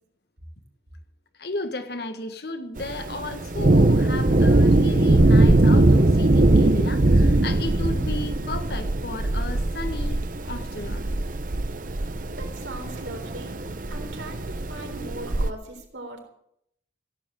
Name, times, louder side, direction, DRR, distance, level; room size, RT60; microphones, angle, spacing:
voice 1, 1.4-11.1, left 2 dB, 60° left, 8 dB, 1.5 m, -34 dB
Thunder, 2.8-15.5, right 2 dB, 50° right, 0.8 m, -21 dB
voice 2, 12.4-13.6 13.9-16.2, right 2 dB, 85° right, 3 dB, 3.9 m, -39 dB
15.5 x 8.8 x 8.8 m, 0.75 s
head